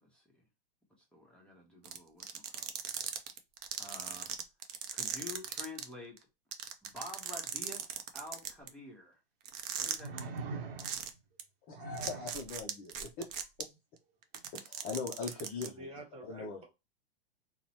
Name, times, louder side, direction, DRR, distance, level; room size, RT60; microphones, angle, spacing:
voice 1, 0.0-0.4 1.1-2.7 3.8-4.3 4.9-6.3 6.8-9.2 9.8-10.5, left 2 dB, 5° left, 0.8 m, -49 dB
sound 1, 1.8-5.8 6.2-6.3 6.5-8.7 9.5-10.2 10.8-11.1 11.4-11.5 12.0-13.6 14.2-15.7, right 10 dB, 45° right, 0.5 m, -38 dB
sound 2, 8.6-8.7 10.0-11.2 11.7-12.4 14.3-14.5, right 4 dB, 70° right, 0.8 m, -42 dB
voice 2, 11.7-13.8 14.5-15.9 16.3-16.6, left 4 dB, 30° left, 0.4 m, -41 dB
voice 3, 15.2-16.6, right 1 dB, 20° right, 1.1 m, -50 dB
2.9 x 2.0 x 2.7 m
hypercardioid pair, 125°, 30 cm